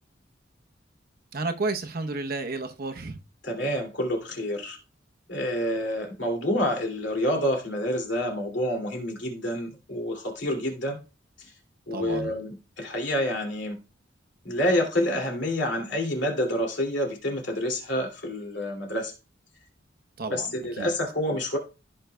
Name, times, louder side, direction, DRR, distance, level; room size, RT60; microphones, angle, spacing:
voice 1, 1.3-3.2 11.9-12.3 20.2-20.9, right 3 dB, 55° right, 0.8 m, -32 dB
voice 2, 3.4-4.8 5.3-11.0 11.9-13.8 14.4-19.1 20.3-21.6, equal, 70° left, 2.5 m, -28 dB
15.0 x 5.5 x 2.2 m
head